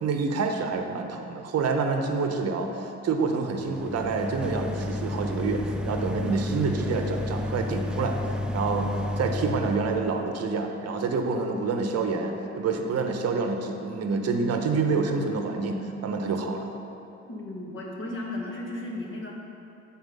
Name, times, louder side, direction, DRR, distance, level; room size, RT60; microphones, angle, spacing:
voice 1, 0.0-8.2 8.5-8.9 9.2-16.7, right 4 dB, 55° right, 4 dB, 0.8 m, -27 dB
sound 1, 3.5-10.2, left 1 dB, 5° right, 0.4 m, -31 dB
voice 2, 17.2-19.4, left 2 dB, 40° left, -2 dB, 1.4 m, -35 dB
8.0 x 4.2 x 5.3 m, 2.8 s
cardioid pair, 90°, 30 cm